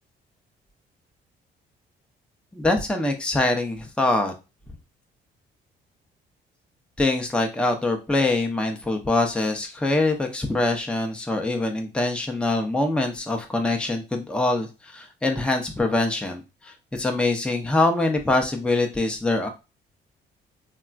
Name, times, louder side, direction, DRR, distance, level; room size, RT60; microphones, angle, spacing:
voice 1, 2.5-4.3 7.0-19.5, left 2 dB, 5° left, 3 dB, 0.5 m, -24 dB
3.6 x 2.2 x 2.4 m, 0.28 s
cardioid pair, 90°, 20 cm